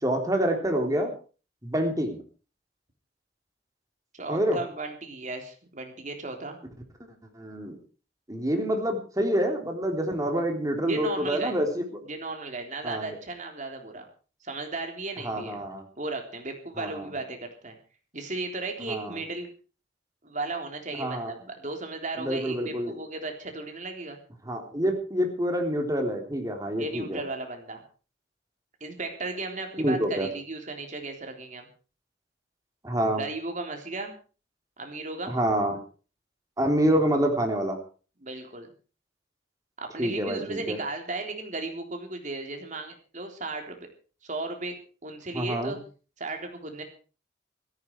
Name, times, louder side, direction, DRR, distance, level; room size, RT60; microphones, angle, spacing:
voice 1, 0.0-1.1 1.6-2.2 4.3-4.6 7.3-7.8 8.3-12.0 12.8-13.1 15.2-15.8 16.8-16.9 18.9-19.2 20.9-21.3 22.2-23.0 24.5-27.2 29.8-30.3 32.8-33.2 35.3-35.8 36.6-37.8 40.0-40.8 45.3-45.8, right 1 dB, 20° right, 3 dB, 3.7 m, -27 dB
voice 2, 4.1-6.6 10.9-11.6 12.1-14.1 14.4-15.6 16.0-17.8 18.1-19.5 20.2-24.2 26.8-27.8 28.8-31.7 33.1-34.1 34.8-35.3 38.2-38.7 39.8-43.9 44.2-44.8 45.0-45.8 46.2-46.8, right 3 dB, 45° right, 4 dB, 3.7 m, -35 dB
17.0 x 15.0 x 4.8 m, 0.38 s
head